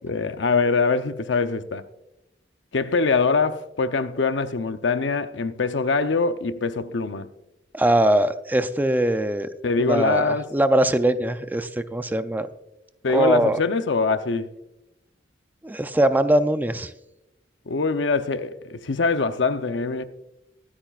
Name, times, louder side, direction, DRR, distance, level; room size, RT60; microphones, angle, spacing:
voice 1, 0.0-1.8 2.7-7.3 9.6-10.5 13.0-14.5 17.7-20.1, left 4 dB, 85° left, 0.7 m, -23 dB
voice 2, 7.7-9.5 9.8-12.5 13.1-13.6 15.6-16.9, right 1 dB, 10° right, 0.4 m, -21 dB
23.5 x 8.8 x 2.4 m
head